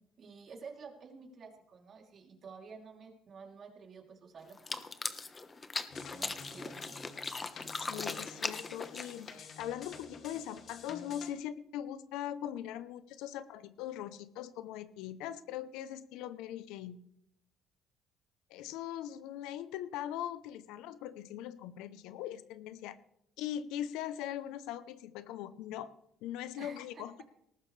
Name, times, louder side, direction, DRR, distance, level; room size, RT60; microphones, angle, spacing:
voice 1, 0.0-4.9 5.7-7.0 26.6-27.0, right 5 dB, 50° right, 2 dB, 3.1 m, -51 dB
sound 1, 4.5-9.4, left 3 dB, 25° left, 1.1 m, -39 dB
sound 2, 5.9-11.3, left 5 dB, 55° left, 2.3 m, -50 dB
voice 2, 7.6-17.0 18.5-23.0 23.4-25.9 26.2-27.1, left 11 dB, 85° left, 14 dB, 0.7 m, -41 dB
19.0 x 14.0 x 3.3 m, 0.75 s
supercardioid pair, 85°, 0 cm